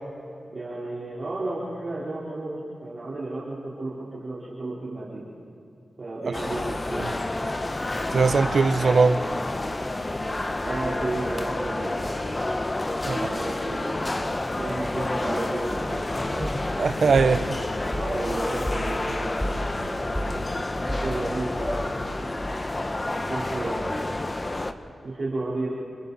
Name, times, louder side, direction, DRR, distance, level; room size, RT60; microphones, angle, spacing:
voice 1, 0.5-5.2 6.0-7.1 10.6-12.4 13.1-16.5 17.9-19.3 19.5-22.0 23.3-24.1 25.0-25.7, right 2 dB, 45° right, 3.9 m, -33 dB
sound 1, 6.3-24.7, left 2 dB, 25° left, 0.9 m, -29 dB
voice 2, 8.1-9.2 13.1-13.2 16.8-17.6, right 4 dB, 60° right, 0.7 m, -21 dB
sound 2, 16.4-22.2, equal, 5° left, 3.2 m, -34 dB
29.0 x 28.5 x 4.1 m
wide cardioid pair, 125°, 0 cm